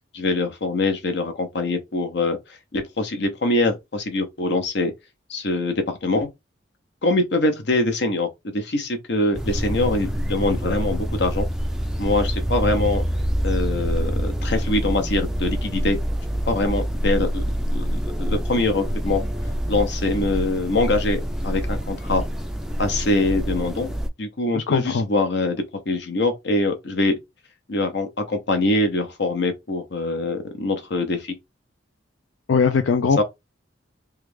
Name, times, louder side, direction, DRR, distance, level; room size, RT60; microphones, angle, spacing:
voice 1, 0.1-2.4 2.7-4.9 5.3-6.3 7.0-8.3 8.5-11.5 12.0-13.0 13.4-16.0 16.5-17.4 17.7-19.2 19.7-22.2 22.8-23.9 24.2-27.1 27.7-31.3 33.2-33.3, left 2 dB, 65° left, 0.8 m, -23 dB
sound 1, 9.3-24.1, equal, 5° right, 0.3 m, -26 dB
voice 2, 24.5-25.0 32.5-33.2, left 5 dB, 90° left, 0.4 m, -20 dB
3.2 x 2.4 x 3.2 m
head